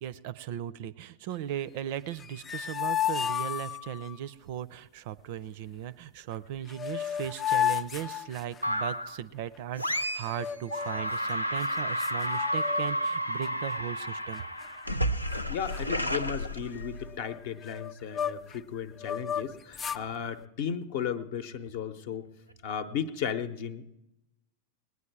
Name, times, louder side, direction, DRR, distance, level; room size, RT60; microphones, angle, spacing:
voice 1, 0.0-14.4, right 11 dB, 50° right, 18 dB, 0.4 m, -37 dB
sound 1, 2.1-4.2 6.3-6.4 6.7-8.9 10.3-11.1 11.6-11.7 12.0-13.1 13.4-13.7 14.3-15.0 15.3-15.4 15.7-18.6 19.0-20.1, left 10 dB, 20° left, 0.4 m, -33 dB
sound 2, 8.6-9.2 9.8-10.4 10.7-17.2, equal, 85° left, 0.5 m, -31 dB
voice 2, 15.5-22.3 22.6-23.9, left 8 dB, 50° left, 11 dB, 0.8 m, -35 dB
20.0 x 9.5 x 4.6 m, 0.91 s
figure-of-eight pair, 90°, 0 cm